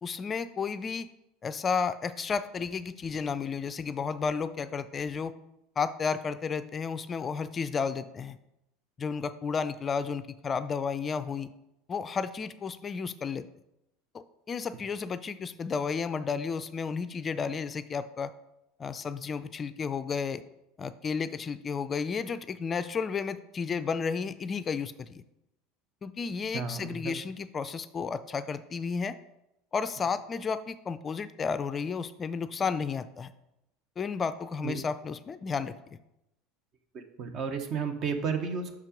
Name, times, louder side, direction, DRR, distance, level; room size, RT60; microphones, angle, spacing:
voice 1, 0.0-1.1 1.4-5.3 5.8-8.4 9.0-11.5 11.9-13.5 14.1-18.3 18.8-20.4 20.8-25.2 26.0-29.1 29.7-33.3 34.0-35.7, left 5 dB, 30° left, 13 dB, 0.3 m, -32 dB
voice 2, 26.5-27.2 34.6-34.8 36.9-38.8, right 5 dB, 50° right, 7 dB, 1.0 m, -33 dB
6.0 x 4.4 x 5.1 m, 0.87 s
hypercardioid pair, 95°, 0 cm